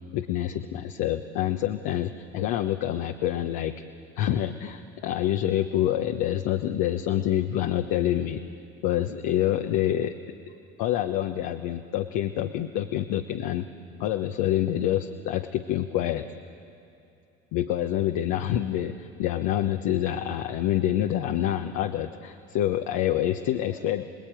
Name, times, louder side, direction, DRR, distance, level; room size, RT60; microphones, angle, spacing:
voice 1, 0.1-3.7 4.2-8.4 8.8-10.1 10.8-13.7 14.0-16.2 17.5-24.1, left 12 dB, 65° left, 6 dB, 1.1 m, -27 dB
29.5 x 20.0 x 9.1 m, 2.7 s
hypercardioid pair, 70°, 37 cm